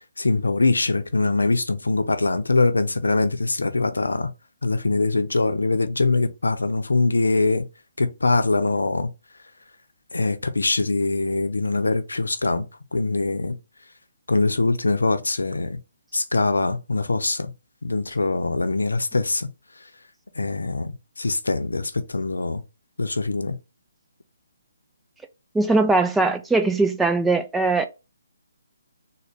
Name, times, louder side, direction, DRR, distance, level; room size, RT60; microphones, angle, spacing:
voice 1, 0.2-4.3 4.6-7.6 8.0-9.1 10.1-12.7 12.9-13.6 14.3-15.8 16.1-17.5 17.8-19.5 20.4-22.6 23.0-23.6, left 3 dB, 85° left, 0.6 m, -23 dB
voice 2, 25.5-27.9, right 3 dB, 5° right, 0.3 m, -20 dB
3.8 x 2.2 x 3.4 m
figure-of-eight pair, 145°, 0 cm